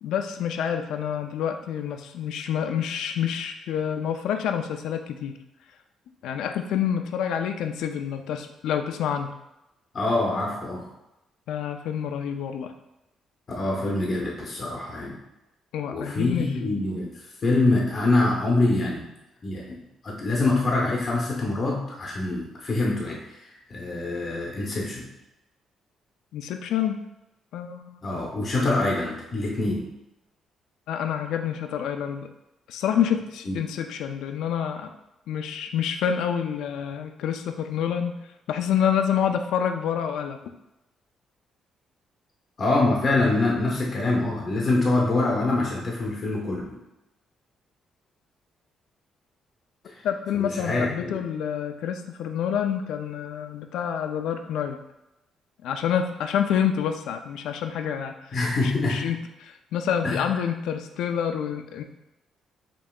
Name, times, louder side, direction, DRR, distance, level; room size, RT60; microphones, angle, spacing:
voice 1, 0.0-5.3 6.2-9.3 11.5-12.7 15.7-16.5 26.3-27.0 27.5-28.0 30.9-32.3 32.7-34.9 35.3-38.2 38.5-40.4 50.0-54.8 55.6-58.1 58.6-61.8, left 8 dB, 85° left, 6 dB, 0.3 m, -27 dB
voice 2, 9.9-10.9 13.6-15.2 15.9-19.1 19.4-19.8 20.0-25.0 28.0-29.9 33.5-33.6 42.6-46.8 49.8-50.0 50.3-51.2 58.3-59.1 60.0-60.2, left 2 dB, 45° left, -2 dB, 0.7 m, -25 dB
5.1 x 2.8 x 2.3 m, 0.92 s
cardioid pair, 90°, 0 cm